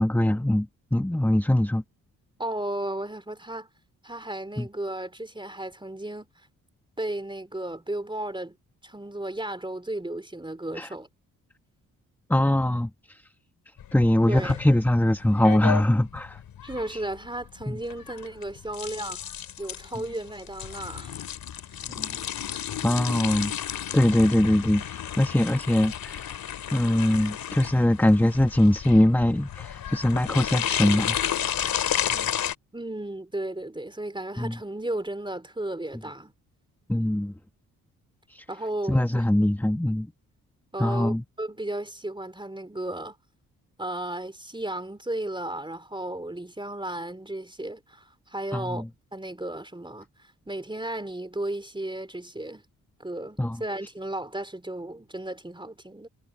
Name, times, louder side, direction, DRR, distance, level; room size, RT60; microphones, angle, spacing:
voice 1, 0.0-1.8 4.6-4.7 10.7-10.9 12.3-13.2 13.9-16.4 16.9-17.0 17.7-17.8 21.9-22.1 22.8-26.3 26.7-31.2 32.2-32.3 34.4-34.6 36.9-37.3 38.3-38.4 38.9-40.1 40.8-41.2 48.5-48.9 53.4-53.6, left 1 dB, 5° left, 1.5 m, -22 dB
voice 2, 2.4-3.7 4.0-6.5 7.0-8.6 8.8-11.1 14.3-14.6 16.6-21.2 21.8-21.9 32.7-36.3 38.5-39.2 40.7-43.2 43.8-52.6 53.0-56.1, right 1 dB, 15° right, 3.6 m, -34 dB
sound 1, 13.8-32.5, left 10 dB, 65° left, 2.4 m, -32 dB
supercardioid pair, 50°, 38 cm